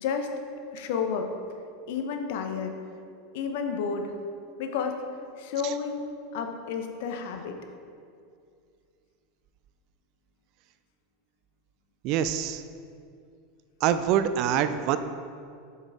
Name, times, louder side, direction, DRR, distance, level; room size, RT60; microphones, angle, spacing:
voice 1, 0.7-1.3 1.9-2.7 3.3-4.1 4.6-4.9 5.4-7.5, left 6 dB, 55° left, 5 dB, 0.7 m, -31 dB
voice 2, 12.0-12.6 13.8-15.0, right 9 dB, 45° right, 11 dB, 0.3 m, -25 dB
8.1 x 5.6 x 3.6 m, 2.4 s
figure-of-eight pair, 85°, 0 cm